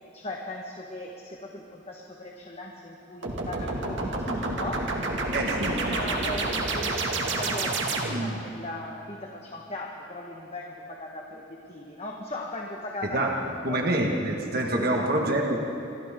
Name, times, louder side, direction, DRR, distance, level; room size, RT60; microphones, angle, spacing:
voice 1, 0.0-13.9 14.8-15.4, left 1 dB, 30° left, 0 dB, 1.5 m, -38 dB
sound 1, 3.2-8.4, right 2 dB, 70° right, 2.2 m, -29 dB
voice 2, 5.3-6.0 13.0-13.3 13.6-15.6, right 1 dB, 50° right, 0 dB, 1.8 m, -26 dB
28.0 x 25.0 x 3.8 m, 2.8 s
head